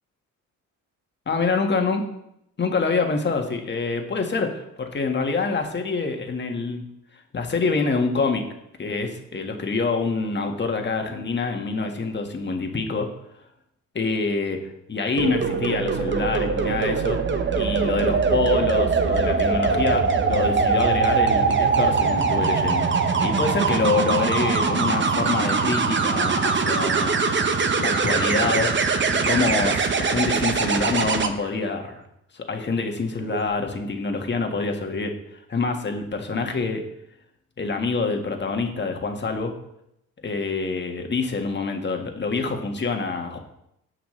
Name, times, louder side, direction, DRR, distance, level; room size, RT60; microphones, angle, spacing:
voice 1, 1.3-2.0 2.6-6.8 7.3-8.4 8.8-13.1 13.9-17.2 17.5-22.9 23.2-27.2 27.7-28.7 29.1-31.9 32.3-36.8 37.6-39.5 40.2-43.4, left 4 dB, 35° left, 4 dB, 1.7 m, -26 dB
sound 1, 15.2-31.3 33.2-33.5, right 5 dB, 40° right, 1.0 m, -22 dB
17.0 x 5.9 x 3.3 m, 0.79 s
cardioid pair, 90°, 30 cm